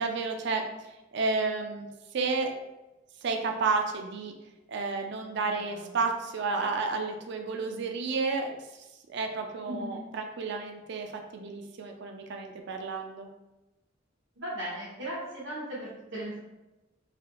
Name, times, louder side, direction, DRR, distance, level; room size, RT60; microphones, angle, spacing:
voice 1, 0.0-2.6 3.2-4.3 4.7-13.3, right 4 dB, 60° right, 4 dB, 0.4 m, -31 dB
voice 2, 5.5-5.9 9.7-10.1 14.4-16.4, right 1 dB, 85° right, -8 dB, 1.1 m, -37 dB
3.4 x 2.7 x 3.7 m, 1.0 s
head